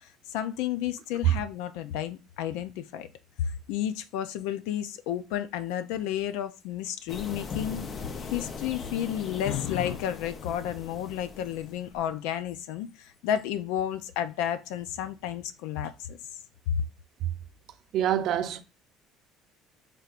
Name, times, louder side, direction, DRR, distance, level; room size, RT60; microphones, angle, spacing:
voice 1, 0.0-3.1 3.4-7.9 8.3-16.2 16.7-16.8, left 10 dB, 85° left, 0.4 m, -31 dB
sound 1, 7.1-12.0, left 5 dB, 35° left, 0.6 m, -40 dB
voice 2, 17.9-18.6, right 11 dB, 60° right, 0.6 m, -24 dB
4.3 x 3.5 x 2.5 m
cardioid pair, 115°, 0 cm